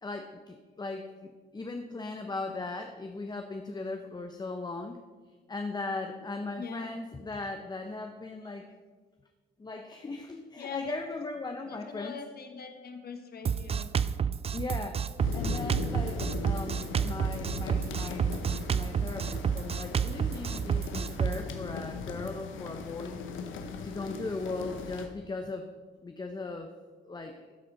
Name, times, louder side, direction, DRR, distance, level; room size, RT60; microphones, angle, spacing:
voice 1, 0.0-5.0 5.5-8.7 9.6-12.1 14.5-15.0 15.3-18.4 18.7-23.2 23.8-25.7 26.0-26.7 27.0-27.5, left 3 dB, 20° left, 5 dB, 0.7 m, -38 dB
voice 2, 6.6-6.9 10.6-11.0 11.7-13.9, left 5 dB, 50° left, 6 dB, 1.3 m, -42 dB
Drum kit, 13.4-21.4, right 7 dB, 30° right, 0.4 m, -30 dB
sound 1, 15.2-25.1, left 4 dB, 80° left, 0.9 m, -38 dB
12.5 x 4.3 x 5.3 m, 1.4 s
cardioid pair, 90°, 20 cm